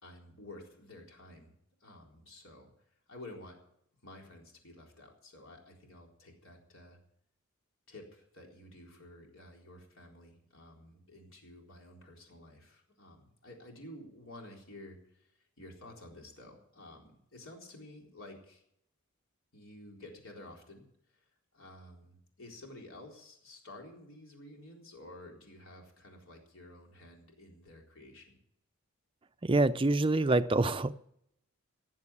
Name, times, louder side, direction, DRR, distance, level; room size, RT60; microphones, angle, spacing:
voice 1, 0.0-1.5 1.8-2.7 3.1-3.6 4.0-7.0 7.9-18.6 19.5-28.4, left 1 dB, 65° left, 0 dB, 4.1 m, -52 dB
voice 2, 29.4-30.9, right 2 dB, 25° right, 12 dB, 0.5 m, -26 dB
18.0 x 7.5 x 8.4 m, 0.73 s
head